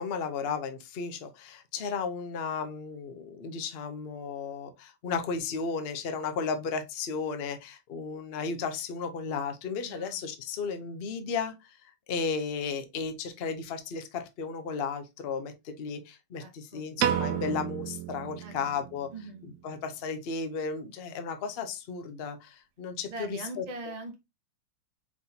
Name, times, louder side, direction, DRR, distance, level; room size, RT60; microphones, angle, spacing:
voice 1, 0.0-19.1 19.4-23.6, left 5 dB, 80° left, 0.5 m, -34 dB
voice 2, 9.8-10.2 16.4-16.8 18.4-18.5 19.1-19.5 23.1-24.2, right 2 dB, 40° right, 0.5 m, -41 dB
Piano, 17.0-19.3, right 10 dB, 75° right, 0.9 m, -31 dB
4.8 x 4.0 x 2.7 m
omnidirectional pair, 2.1 m